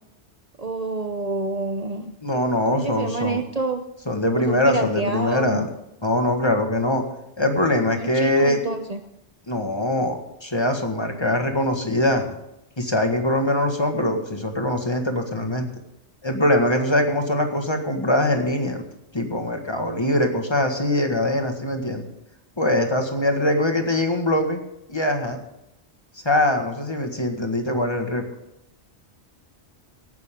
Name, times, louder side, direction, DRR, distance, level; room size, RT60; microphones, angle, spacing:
voice 1, 0.6-2.1 2.7-3.8 4.4-5.7 8.0-9.0, right 3 dB, 40° right, 6 dB, 0.9 m, -28 dB
voice 2, 2.2-3.4 4.1-5.7 6.0-7.0 7.4-8.6 9.5-12.2 12.8-15.7 16.2-18.8 19.1-22.1 22.6-24.6 24.9-25.4 26.3-28.2, left 1 dB, 25° left, 4 dB, 1.8 m, -22 dB
17.5 x 10.5 x 3.7 m, 0.87 s
omnidirectional pair, 1.2 m